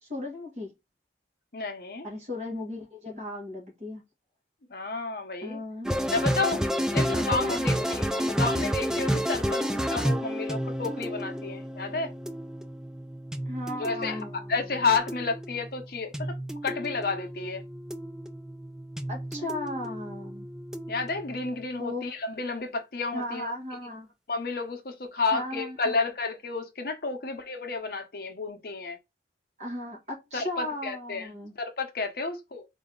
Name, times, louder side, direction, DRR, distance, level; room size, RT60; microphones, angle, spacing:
voice 1, 0.0-0.7 2.0-4.0 5.4-5.9 7.1-8.6 13.5-14.8 19.1-20.5 21.8-22.1 23.1-24.1 25.3-26.0 29.6-31.5, left 1 dB, 40° right, 1.7 m, -36 dB
voice 2, 1.5-2.1 4.7-5.6 6.1-6.6 6.9-8.0 8.4-12.1 13.8-14.2 14.5-16.4 16.6-17.6 20.9-23.5 24.3-29.0 30.3-32.7, left 4 dB, 55° left, 0.8 m, -31 dB
sound 1, 5.8-21.6, equal, 5° right, 0.3 m, -31 dB
3.9 x 2.7 x 3.6 m
head